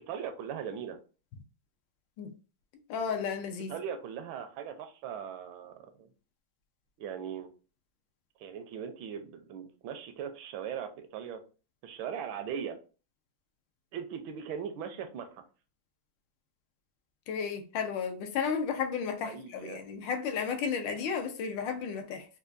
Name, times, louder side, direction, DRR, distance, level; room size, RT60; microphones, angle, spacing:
voice 1, 0.1-1.0 3.7-6.1 7.0-7.5 8.4-11.4 11.8-12.8 13.9-15.4 19.2-19.9, right 8 dB, 80° right, 1.4 m, -39 dB
voice 2, 2.9-3.7 17.3-22.3, left 6 dB, 80° left, 1.3 m, -33 dB
4.5 x 2.2 x 2.5 m
omnidirectional pair, 2.1 m